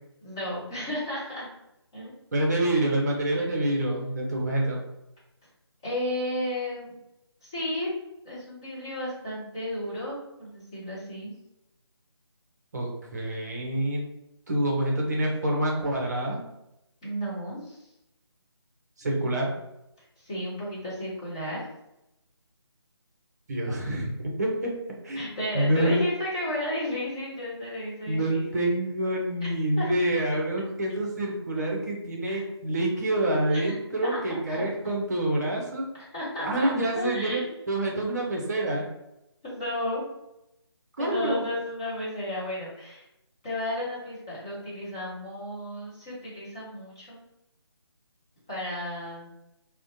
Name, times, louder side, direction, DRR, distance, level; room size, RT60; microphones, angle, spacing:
voice 1, 0.2-1.5 1.9-2.2 3.3-3.4 5.8-6.9 7.4-7.9 8.2-11.3 17.0-17.9 20.2-21.7 25.1-28.7 29.7-29.9 31.5-31.8 32.2-32.4 33.3-33.7 34.0-34.2 34.5-34.6 36.0-37.5 39.4-40.0 41.0-43.0 43.4-47.2 48.5-49.3, left 1 dB, 10° left, -10 dB, 0.4 m, -33 dB
voice 2, 2.3-4.8 12.7-14.0 14.5-16.4 19.0-19.5 23.5-24.7 25.0-25.2 25.5-26.0 28.1-35.8 36.4-38.8 41.0-41.4, right 1 dB, 40° right, -2 dB, 0.7 m, -27 dB
2.5 x 2.1 x 2.6 m, 0.86 s
figure-of-eight pair, 155°, 15 cm